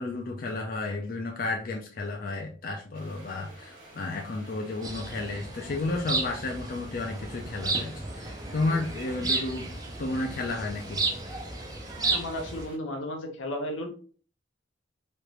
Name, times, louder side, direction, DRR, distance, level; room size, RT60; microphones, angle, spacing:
voice 1, 0.0-11.1, left 2 dB, 50° left, 1 dB, 0.4 m, -32 dB
sound 1, 2.9-12.8, right 1 dB, 45° right, 1.4 m, -50 dB
sound 2, 4.8-12.7, right 3 dB, 20° right, 0.5 m, -33 dB
voice 2, 12.0-13.9, left 1 dB, 80° left, 3 dB, 0.8 m, -34 dB
3.1 x 2.5 x 3.1 m, 0.41 s
head